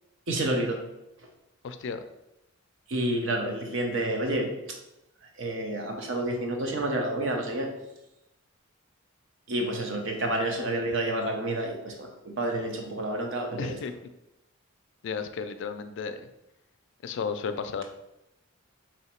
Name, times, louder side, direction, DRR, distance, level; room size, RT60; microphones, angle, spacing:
voice 1, 0.3-0.8 2.9-4.5 5.4-7.7 9.5-13.8, right 1 dB, 60° right, 2 dB, 0.7 m, -29 dB
voice 2, 1.6-2.0 13.6-13.9 15.0-16.2 17.0-17.8, left 5 dB, 60° left, 9 dB, 0.3 m, -33 dB
3.1 x 2.8 x 4.3 m, 0.89 s
head